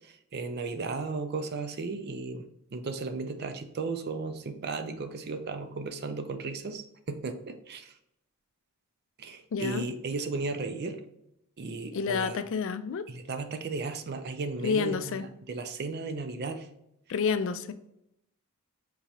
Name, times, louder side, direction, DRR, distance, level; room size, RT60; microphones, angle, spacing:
voice 1, 0.0-7.9 9.2-11.0 11.6-12.4 13.1-16.7, right 3 dB, 45° right, 8 dB, 0.4 m, -35 dB
voice 2, 9.5-9.9 11.9-13.1 14.6-15.2 17.1-17.7, left 5 dB, 60° left, 11 dB, 0.3 m, -29 dB
4.6 x 2.9 x 2.8 m, 0.80 s
head